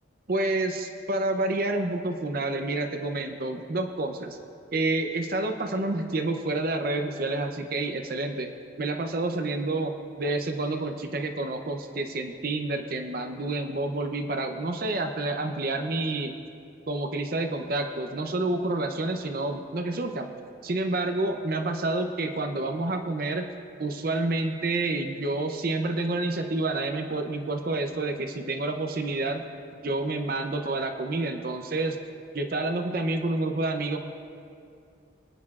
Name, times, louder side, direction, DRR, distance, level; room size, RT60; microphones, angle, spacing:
voice 1, 0.3-4.4 4.7-8.5 8.8-16.3 16.9-20.3 20.6-23.5 23.8-29.4 29.8-32.0 32.3-34.0, right 2 dB, 50° right, 5 dB, 0.6 m, -29 dB
22.0 x 9.6 x 2.4 m, 2.4 s
head